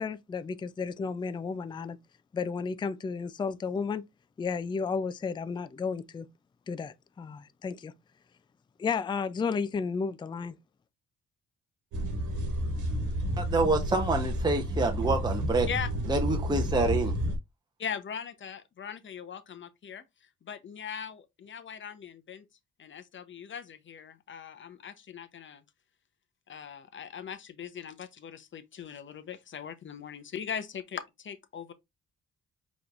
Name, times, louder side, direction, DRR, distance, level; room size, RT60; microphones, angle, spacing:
voice 1, 0.0-2.0 2.3-4.0 4.4-6.3 6.7-7.9 8.8-10.6, left 5 dB, 15° left, 0.3 m, -33 dB
sound 1, 11.9-17.4, equal, 75° right, 1.3 m, -30 dB
voice 2, 13.4-15.7 16.1-17.1, right 3 dB, 15° right, 0.8 m, -27 dB
voice 3, 17.8-20.0 20.4-22.4 22.8-25.6 26.5-31.7, left 7 dB, 40° left, 0.7 m, -40 dB
4.9 x 3.1 x 2.4 m
cardioid pair, 90°, 30 cm